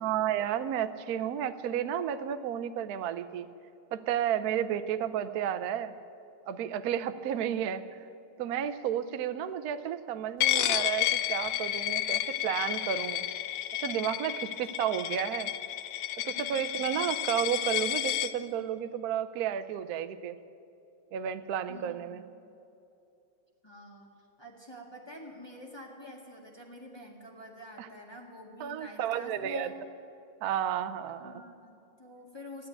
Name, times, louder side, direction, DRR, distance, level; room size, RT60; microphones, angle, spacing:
voice 1, 0.0-3.5 3.9-5.9 6.5-7.8 8.4-13.2 13.8-15.5 16.2-20.4 21.1-22.2 27.8-27.9 28.6-29.7 30.4-31.3, right 9 dB, 75° right, 11 dB, 0.8 m, -32 dB
Coin (dropping), 10.4-18.3, left 13 dB, 85° left, 0.9 m, -31 dB
voice 2, 16.3-17.0 21.7-22.2 23.6-24.1 24.4-29.7 31.2-32.7, left 1 dB, 15° left, -2 dB, 1.6 m, -47 dB
14.5 x 11.0 x 8.9 m, 2.7 s
omnidirectional pair, 2.4 m